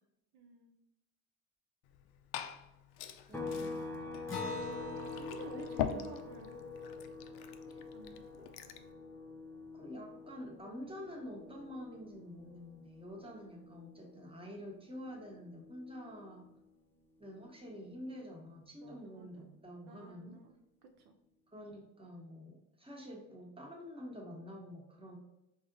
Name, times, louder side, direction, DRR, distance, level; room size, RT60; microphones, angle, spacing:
voice 1, 0.3-0.7 3.3-3.7 4.8-6.5 7.7-8.2 18.7-19.5 19.9-20.6 21.0-21.2, right 5 dB, 65° right, 4 dB, 0.5 m, -53 dB
Liquid, 1.8-8.9, left 9 dB, 65° left, 0.5 m, -44 dB
voice 2, 3.2-3.8 5.3-6.1 7.7-7.8 8.4-8.5 9.7-16.5 17.2-20.4 21.5-25.2, equal, 15° right, 0 dB, 1.1 m, -48 dB
sound 1, 3.3-16.9 17.2-19.4, left 3 dB, 5° left, 0.4 m, -48 dB
Acoustic guitar, 4.3-9.2, left 3 dB, 30° left, 0.8 m, -45 dB
3.9 x 2.9 x 2.5 m, 0.90 s
hypercardioid pair, 60°, 43 cm